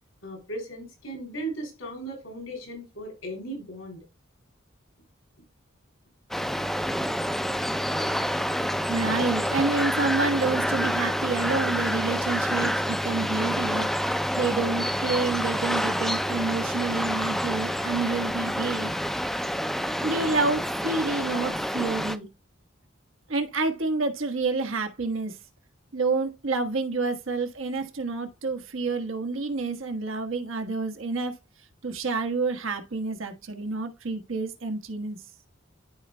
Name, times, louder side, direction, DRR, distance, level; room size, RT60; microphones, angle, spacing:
voice 1, 0.2-4.0, right 1 dB, 85° left, 3.3 m, -37 dB
sound 1, 6.3-22.2, equal, ahead, 0.4 m, -28 dB
voice 2, 8.9-14.0 14.3-18.9 20.0-22.3 23.3-25.4 25.9-31.3 31.8-35.2, right 3 dB, 85° right, 1.3 m, -28 dB
12.5 x 4.3 x 2.2 m
head